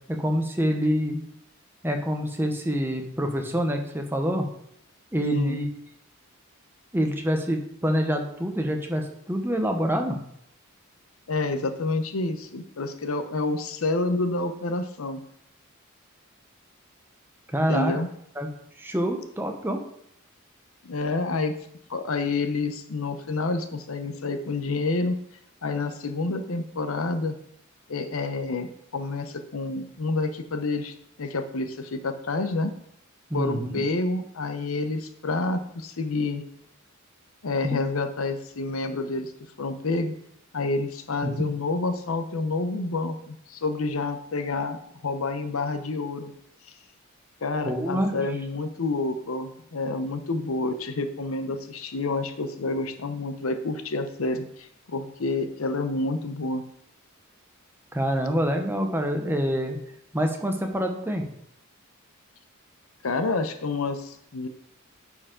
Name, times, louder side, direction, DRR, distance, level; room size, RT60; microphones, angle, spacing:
voice 1, 0.1-1.2 1.8-4.5 5.1-5.7 6.9-10.2 17.5-17.9 18.4-18.5 18.8-19.8 33.3-33.8 37.6-37.8 41.2-41.3 47.6-48.2 57.9-59.8 60.1-61.2, equal, 10° right, 3 dB, 0.8 m, -26 dB
voice 2, 11.3-15.2 17.7-18.1 20.8-21.5 21.9-25.2 25.6-27.4 27.9-32.7 33.3-36.4 37.4-39.3 39.6-40.1 40.5-46.3 47.4-56.6 63.0-64.5, left 3 dB, 75° left, 9 dB, 0.7 m, -28 dB
9.7 x 4.6 x 3.7 m, 0.72 s
head